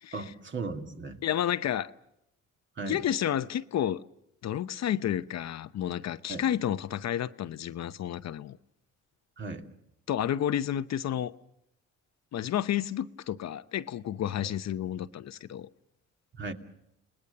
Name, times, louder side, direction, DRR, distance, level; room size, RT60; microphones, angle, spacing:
voice 1, 0.1-1.2 2.8-3.0 6.3-6.4 9.4-9.6 14.4-14.5 16.4-16.5, right 3 dB, 40° right, 2.7 m, -36 dB
voice 2, 1.2-1.9 2.9-4.0 4.4-8.6 10.1-11.3 12.3-15.7, left 10 dB, 60° left, 0.8 m, -31 dB
29.5 x 19.5 x 6.8 m
cardioid pair, 90°, 30 cm